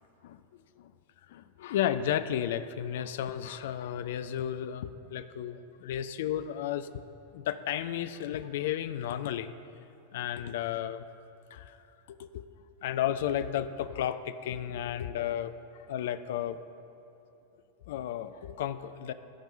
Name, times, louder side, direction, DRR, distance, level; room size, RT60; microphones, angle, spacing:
voice 1, 1.3-7.0 7.3-9.5 10.1-11.0 11.5-11.8 12.1-12.5 12.8-15.5 15.9-16.6 17.9-19.1, left 10 dB, 55° left, 12 dB, 0.4 m, -33 dB
15.5 x 5.4 x 5.0 m, 2.7 s
figure-of-eight pair, 90°, 0 cm